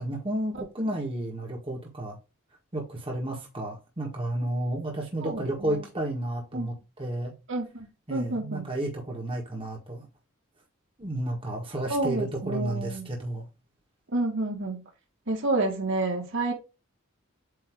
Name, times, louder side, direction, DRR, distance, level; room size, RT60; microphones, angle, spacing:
voice 1, 0.0-2.2 2.7-7.3 8.1-10.1 11.0-13.4, right 1 dB, 25° right, 1.6 m, -32 dB
voice 2, 5.2-5.8 6.5-6.7 7.5-8.6 11.9-13.1 14.1-14.8 15.3-16.5, right 2 dB, 60° right, 2.3 m, -29 dB
8.3 x 3.1 x 4.6 m
head